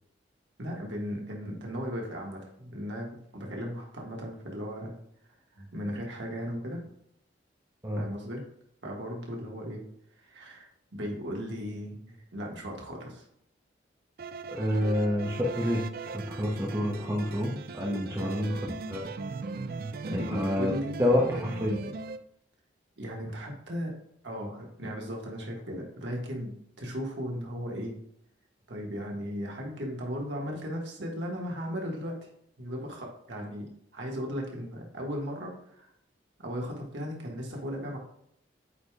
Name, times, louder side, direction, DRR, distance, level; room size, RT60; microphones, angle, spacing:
voice 1, 0.6-4.9 5.5-6.8 7.9-8.4 8.8-9.8 10.2-13.2 18.1-18.6 20.1-21.9 23.0-23.9 24.2-27.9 28.7-32.3 32.6-35.9 36.4-38.0, equal, 75° right, -1 dB, 1.7 m, -36 dB
sound 1, 14.2-22.2, right 4 dB, 50° right, 0.4 m, -39 dB
voice 2, 14.5-15.9 16.1-19.1 20.1-20.7 21.0-21.8, left 1 dB, 15° right, -1 dB, 0.8 m, -28 dB
8.1 x 5.0 x 2.4 m, 0.70 s
head